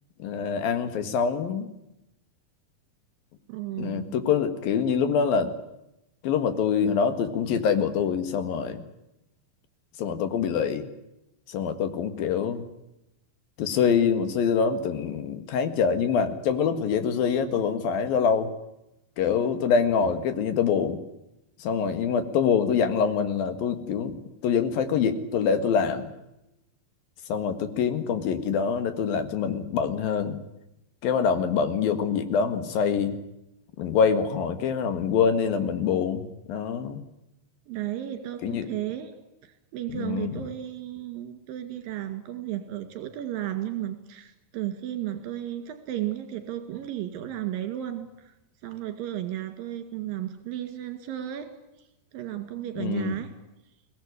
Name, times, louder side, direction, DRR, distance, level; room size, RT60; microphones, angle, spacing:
voice 1, 0.2-1.7 3.8-5.5 6.2-8.8 10.0-10.9 11.5-12.7 13.6-18.5 19.2-21.0 21.6-24.2 24.4-26.1 27.3-30.4 31.0-33.2 33.8-37.0 38.4-38.7 39.9-40.4 52.8-53.2, left 6 dB, 70° left, 9 dB, 3.5 m, -25 dB
voice 2, 3.5-4.1 37.7-39.1 39.4-48.3 48.6-51.5 51.8-51.9 52.1-53.3, right 12 dB, 70° right, 7 dB, 3.8 m, -34 dB
23.5 x 18.5 x 9.8 m, 0.89 s
omnidirectional pair, 4.4 m